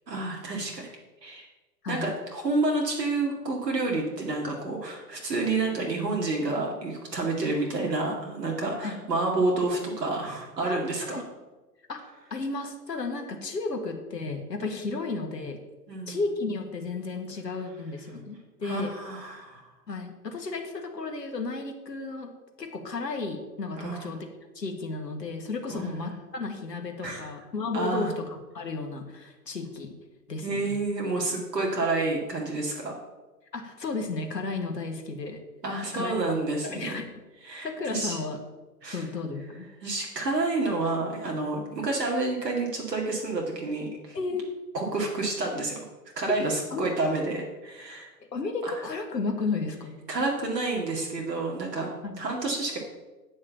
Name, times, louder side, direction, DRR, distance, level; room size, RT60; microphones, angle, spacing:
voice 1, 0.1-0.9 1.2-1.5 1.9-11.2 15.9-16.2 18.6-19.7 23.8-24.1 25.7-26.0 27.0-27.3 27.7-28.1 30.4-32.9 35.6-37.0 37.4-38.2 38.8-39.0 39.8-44.2 44.7-45.8 46.2-48.1 48.6-48.8 50.1-52.8, right 2 dB, 75° right, -1 dB, 2.4 m, -29 dB
voice 2, 12.3-15.6 16.1-18.9 19.9-24.3 24.5-30.0 30.3-30.8 33.5-35.4 35.9-36.1 36.6-37.1 37.6-38.4 38.9-39.7 44.1-44.6 46.3-46.4 46.7-46.9 48.2-50.0 52.0-52.2, left 3 dB, 80° left, 5 dB, 1.7 m, -33 dB
8.8 x 6.4 x 7.0 m, 1.2 s
figure-of-eight pair, 115°, 49 cm